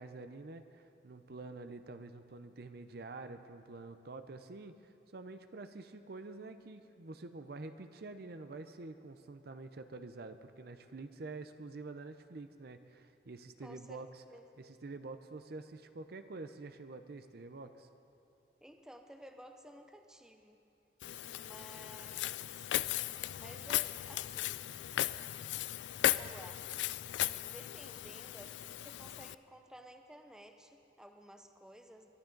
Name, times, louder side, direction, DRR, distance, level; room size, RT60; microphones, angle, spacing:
voice 1, 0.0-14.2 14.6-17.9, right 3 dB, 60° right, 9 dB, 0.6 m, -47 dB
voice 2, 13.6-14.5 18.6-20.6 21.3-22.7 23.4-24.6 26.0-26.6 27.4-32.1, equal, 5° right, 5 dB, 0.7 m, -54 dB
Walk footsteps, 21.0-29.3, left 13 dB, 80° left, 0.3 m, -37 dB
23.5 x 11.5 x 3.9 m, 2.6 s
head